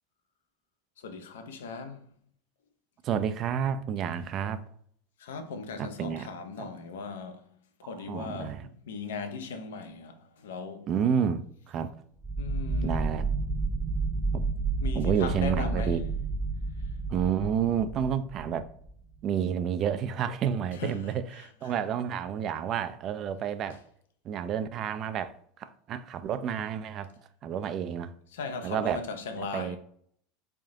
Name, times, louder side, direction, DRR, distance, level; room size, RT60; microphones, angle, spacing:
voice 1, 1.0-2.1 5.2-7.5 7.8-10.9 12.4-13.2 14.8-16.0 16.8-16.9 20.7-21.8 23.7-23.8 28.3-29.8, left 4 dB, 80° left, 0.5 m, -38 dB
voice 2, 3.0-4.6 5.8-6.3 6.6-6.7 8.1-8.6 10.9-11.9 12.8-13.3 14.3-14.4 15.0-16.0 17.1-18.7 19.2-23.8 24.2-27.1 27.4-28.1 28.6-29.0 29.5-29.8, right 8 dB, 45° right, 0.4 m, -30 dB
sound 1, 12.2-19.0, right 3 dB, 10° right, 0.8 m, -31 dB
3.4 x 2.7 x 3.6 m
hypercardioid pair, 85°, 0 cm